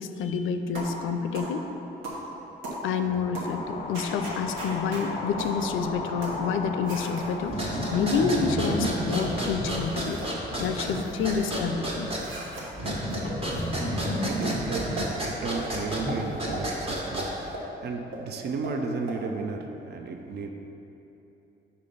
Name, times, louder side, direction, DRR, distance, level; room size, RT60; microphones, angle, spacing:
voice 1, 0.0-1.7 2.8-10.2 10.6-12.1, left 5 dB, 80° left, 8 dB, 0.4 m, -28 dB
sound 1, 0.8-1.0 1.3-1.5 2.0-2.2 2.6-2.8 3.3-3.5 3.9-5.1 5.4-5.6 6.2-6.4 6.9-7.3 7.9-8.7 9.2-9.4 9.9-10.3 10.6-11.6 12.1-12.7 13.1-13.2 13.5-13.7 13.9-14.1 14.4-14.5 15.0-15.1 15.6-15.7 16.1-16.2 16.5-16.6 17.2-17.7 18.1-18.2 18.6-18.8 19.1-19.2, right 1 dB, 85° right, 1.3 m, -38 dB
sound 2, 3.0-11.2, left 3 dB, 30° left, 0.5 m, -38 dB
sound 3, 7.4-17.5, equal, 30° right, 1.3 m, -31 dB
voice 2, 14.1-20.5, right 4 dB, 55° right, 5 dB, 0.5 m, -34 dB
5.0 x 4.2 x 5.5 m, 3.0 s
cardioid pair, 90°, 20 cm